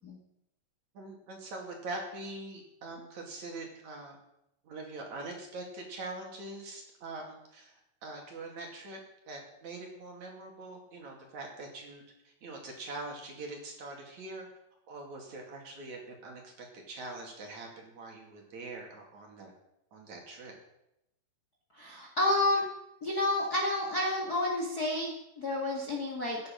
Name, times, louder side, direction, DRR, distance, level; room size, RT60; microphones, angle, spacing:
voice 1, 0.9-4.2 4.6-9.0 9.3-14.5 14.9-19.5 19.9-20.6, right 2 dB, 55° right, 1 dB, 3.7 m, -43 dB
voice 2, 21.7-22.6 23.0-26.4, left 2 dB, 35° left, 0 dB, 1.8 m, -30 dB
16.0 x 10.0 x 6.0 m, 0.83 s
omnidirectional pair, 4.3 m